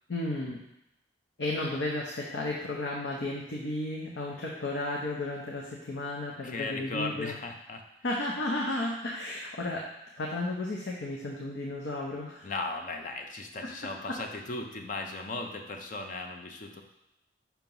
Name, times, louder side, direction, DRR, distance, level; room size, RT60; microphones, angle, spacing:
voice 1, 0.1-0.6 1.4-7.4 8.0-9.9 10.2-12.5, left 2 dB, 80° left, -2 dB, 0.7 m, -33 dB
voice 2, 6.4-7.8 12.4-16.8, left 2 dB, 45° left, 4 dB, 0.6 m, -37 dB
5.9 x 3.0 x 5.3 m, 0.85 s
head